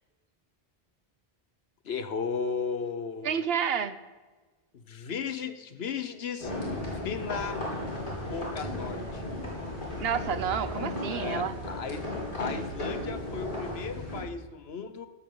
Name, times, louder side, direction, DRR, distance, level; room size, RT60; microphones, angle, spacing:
voice 1, 1.8-3.4 4.7-6.5 7.0-7.6 8.3-9.2 11.1-12.0 12.4-15.1, left 6 dB, 75° left, 10 dB, 1.2 m, -35 dB
voice 2, 3.2-4.0 10.0-11.6, right 7 dB, 75° right, 13 dB, 1.0 m, -29 dB
sound 1, 6.4-14.2, left 1 dB, 55° left, 4.0 m, -35 dB
16.0 x 13.0 x 3.9 m, 1.3 s
omnidirectional pair, 1.1 m